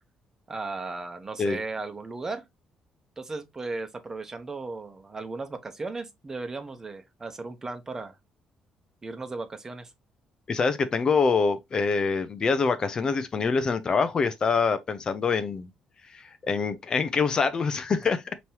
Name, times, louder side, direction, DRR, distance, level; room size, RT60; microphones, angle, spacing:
voice 1, 0.5-2.4 3.2-8.2 9.0-9.9, right 3 dB, 25° right, 0.9 m, -36 dB
voice 2, 10.5-15.7 16.1-18.3, left 5 dB, 40° left, 0.6 m, -25 dB
5.2 x 3.0 x 2.9 m
cardioid pair, 100°, 2 cm